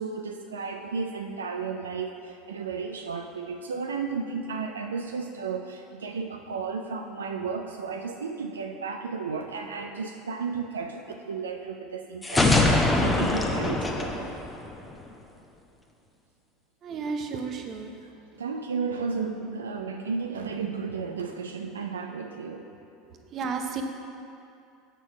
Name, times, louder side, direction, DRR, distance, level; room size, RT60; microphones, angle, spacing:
voice 1, 0.0-14.3 18.3-22.7, right 5 dB, 90° right, 4 dB, 0.3 m, -33 dB
sound 1, 12.2-15.1, left 2 dB, 15° left, 0.8 m, -23 dB
voice 2, 16.8-17.9 23.0-23.8, right 5 dB, 45° right, 4 dB, 0.7 m, -33 dB
6.6 x 4.4 x 5.9 m, 2.5 s
hypercardioid pair, 80°, 0 cm